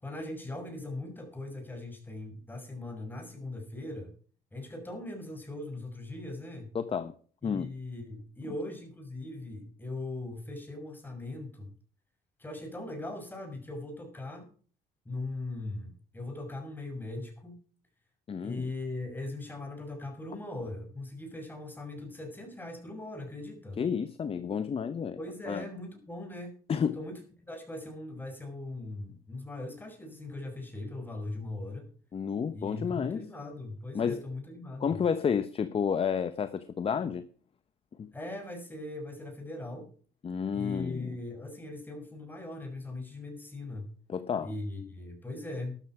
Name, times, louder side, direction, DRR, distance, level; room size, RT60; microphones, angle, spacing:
voice 1, 0.0-4.1 4.5-6.7 7.4-11.7 12.4-14.5 15.0-17.6 18.4-23.8 25.2-26.5 26.9-27.2 27.5-31.9 32.5-35.0 38.1-39.9 40.5-43.9 44.4-45.8, left 2 dB, 10° left, 3 dB, 6.2 m, -40 dB
voice 2, 6.7-7.1 7.4-7.7 18.3-18.6 23.8-25.2 25.5-25.6 26.7-27.0 32.1-33.2 33.9-34.2 34.8-37.3 38.0-38.1 40.2-41.2 44.1-44.5, left 7 dB, 35° left, 12 dB, 0.9 m, -30 dB
13.0 x 11.5 x 4.8 m, 0.43 s
cardioid pair, 110°, 17 cm